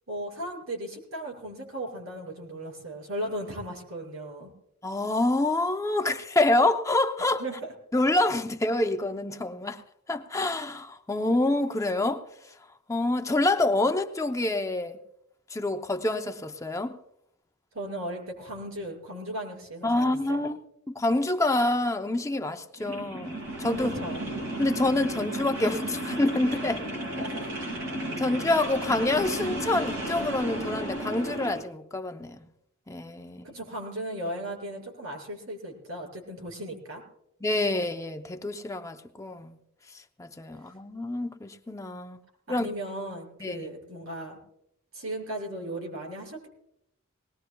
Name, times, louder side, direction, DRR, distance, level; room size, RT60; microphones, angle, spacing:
voice 1, 0.1-4.5 7.4-7.7 17.7-20.4 24.0-24.3 27.2-27.5 33.4-37.0 42.5-44.4 44.9-46.5, right 1 dB, 85° right, 5.8 m, -36 dB
voice 2, 4.8-7.4 7.9-9.8 10.1-12.2 12.9-15.0 15.5-17.0 19.8-23.9 24.6-26.8 28.2-32.5 32.9-33.5 37.4-39.6 40.2-42.2 42.5-42.7 43.4-43.7, left 2 dB, 15° left, 0.6 m, -27 dB
sound 1, 22.8-31.6, right 1 dB, 70° right, 7.1 m, -33 dB
20.0 x 19.0 x 2.3 m
head